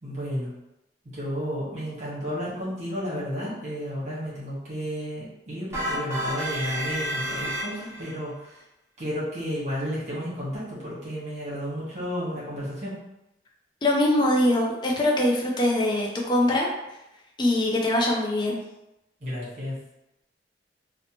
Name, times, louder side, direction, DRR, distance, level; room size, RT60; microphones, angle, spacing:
voice 1, 0.0-0.5 1.0-8.4 9.0-12.9 19.2-19.8, equal, 40° right, -8 dB, 1.1 m, -32 dB
sound 1, 5.7-8.1, equal, 15° right, 0.8 m, -30 dB
voice 2, 13.8-16.7 17.4-18.6, left 1 dB, 25° left, -1 dB, 0.4 m, -22 dB
2.8 x 2.1 x 2.8 m, 0.91 s
head